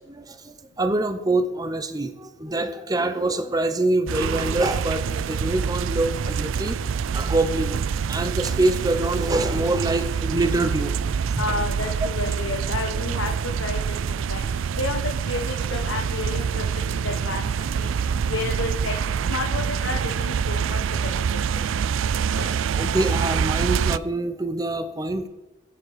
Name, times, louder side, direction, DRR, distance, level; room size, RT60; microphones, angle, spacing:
voice 1, 0.1-6.8 7.1-7.8 8.1-10.9 22.7-25.3, right 2 dB, 20° right, 9 dB, 0.8 m, -25 dB
sound 1, 4.1-24.0, right 6 dB, 80° right, 0.4 m, -26 dB
voice 2, 11.4-13.8 14.1-14.4 14.7-18.0 18.2-18.9 19.3-20.8 22.3-22.6, left 3 dB, 85° left, 3 dB, 1.3 m, -31 dB
22.5 x 7.6 x 4.9 m, 1.1 s
head